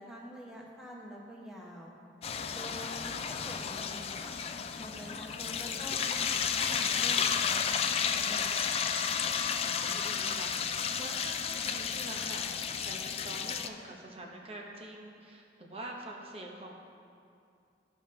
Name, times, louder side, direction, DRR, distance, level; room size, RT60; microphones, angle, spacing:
voice 1, 0.0-1.9 2.5-3.2 3.4-4.4 4.8-8.7, equal, 5° right, -4 dB, 1.1 m, -46 dB
sound 1, 2.2-13.7, left 7 dB, 35° left, 0.3 m, -32 dB
voice 2, 2.9-3.3 9.6-16.8, right 2 dB, 35° right, 0 dB, 0.9 m, -45 dB
13.5 x 5.3 x 3.3 m, 2.5 s
head